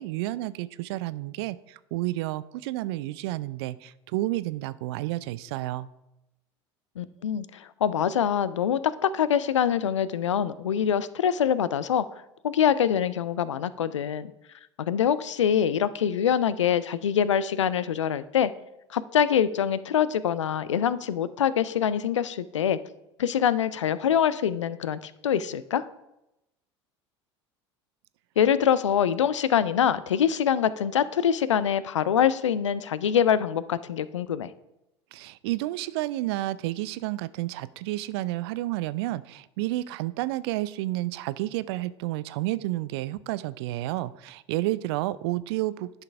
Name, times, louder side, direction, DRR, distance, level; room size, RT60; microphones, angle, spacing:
voice 1, 0.0-5.9 35.1-45.9, right 17 dB, 60° right, 17 dB, 0.4 m, -30 dB
voice 2, 7.0-12.1 12.4-14.3 14.8-18.5 18.9-22.8 23.2-25.8 28.4-34.5, left 9 dB, 80° left, 16 dB, 0.4 m, -24 dB
10.5 x 5.8 x 3.4 m, 0.90 s
figure-of-eight pair, 70°, 15 cm